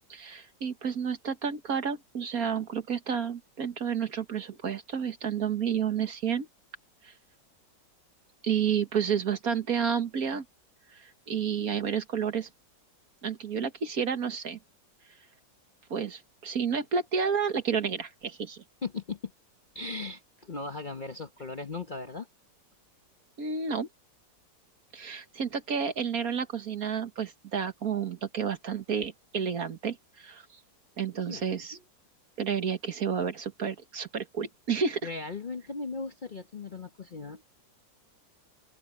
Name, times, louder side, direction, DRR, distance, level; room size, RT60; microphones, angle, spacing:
voice 1, 0.1-6.5 7.0-7.1 8.4-10.5 10.9-12.5 13.2-14.6 15.9-18.6 23.4-23.9 24.9-30.4 31.0-31.8 32.4-35.1, right 7 dB, 55° right, 1.8 m, -30 dB
voice 2, 18.8-19.3 19.7-22.3 31.2-31.5 31.7-31.8 35.0-37.6, left 3 dB, 35° left, 0.9 m, -38 dB
open air
omnidirectional pair, 1.9 m